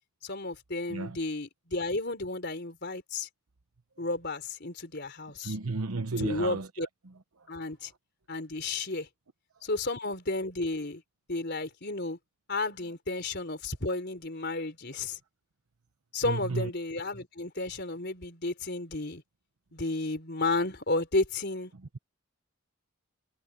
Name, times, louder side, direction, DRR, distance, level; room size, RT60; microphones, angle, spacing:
voice 1, 0.2-3.3 4.0-5.6 6.2-6.9 7.5-7.9 8.3-9.1 9.6-11.0 11.3-12.2 12.5-15.2 16.1-19.2 19.7-21.7, left 2 dB, 50° left, 4.1 m, -32 dB
voice 2, 5.4-6.9 16.2-16.7, right 3 dB, 80° right, 1.0 m, -33 dB
head